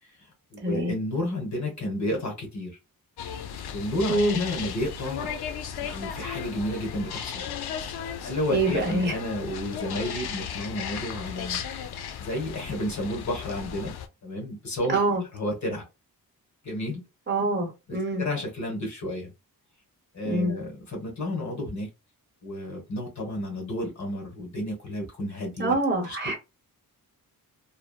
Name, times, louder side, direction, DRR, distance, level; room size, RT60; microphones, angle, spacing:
voice 1, 0.0-2.8 3.7-5.3 5.8-7.5 8.2-11.6 12.2-13.9 14.2-15.0 15.3-15.8 16.6-17.0 18.2-19.3 20.1-21.9 22.4-25.8 26.0-26.2, left 1 dB, 50° left, 1.3 m, -31 dB
voice 2, 0.6-0.9 4.1-4.4 8.5-9.1 14.9-15.2 17.3-18.3 20.2-20.5 25.6-26.4, right 2 dB, 30° right, 0.9 m, -25 dB
sound 1, 3.2-14.1, left 8 dB, 85° left, 0.5 m, -35 dB
3.2 x 2.0 x 2.3 m
wide cardioid pair, 175°, 37 cm